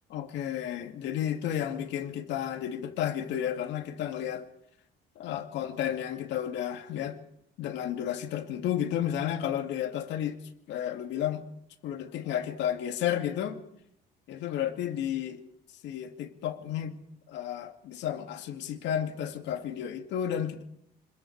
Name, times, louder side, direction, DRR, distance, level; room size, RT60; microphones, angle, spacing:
voice 1, 0.1-4.5 5.2-7.2 7.6-10.4 10.7-11.4 11.8-13.6 14.3-15.4 15.8-17.0 17.3-20.6, left 10 dB, 75° left, 2.4 m, -32 dB
25.5 x 21.5 x 4.8 m
cardioid pair, 140°, 19 cm